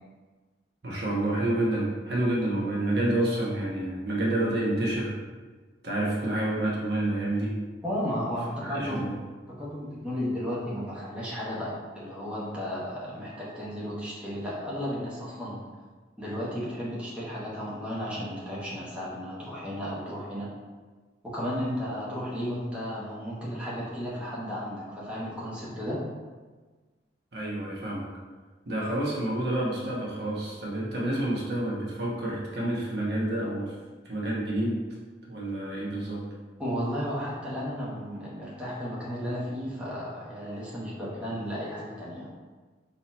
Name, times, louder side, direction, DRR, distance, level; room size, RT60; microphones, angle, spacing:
voice 1, 0.8-5.1 5.8-7.6 8.6-9.1 27.3-28.1 28.7-33.7 34.0-34.8 35.3-36.2, right 1 dB, 60° right, -4 dB, 1.0 m, -28 dB
voice 2, 7.8-9.1 9.5-15.6 16.2-20.5 21.2-26.0 36.6-42.3, equal, 5° right, -8 dB, 0.9 m, -34 dB
4.1 x 2.9 x 4.1 m, 1.4 s
head